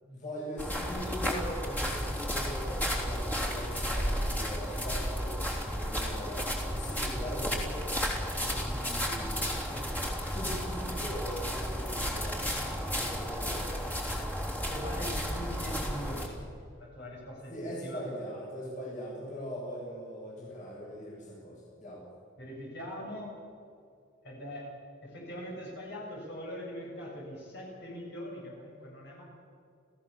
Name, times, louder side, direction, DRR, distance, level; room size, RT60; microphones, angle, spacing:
voice 1, 0.0-5.3 5.7-7.8 8.4-12.4 12.8-13.8 17.5-22.0, equal, 35° left, -4 dB, 7.2 m, -41 dB
sound 1, 0.6-16.3, equal, 10° left, 3.4 m, -33 dB
voice 2, 14.7-18.1 22.4-23.3 24.2-24.7 25.0-29.2, equal, 55° left, -3 dB, 7.6 m, -42 dB
29.0 x 17.0 x 7.1 m, 2.4 s
head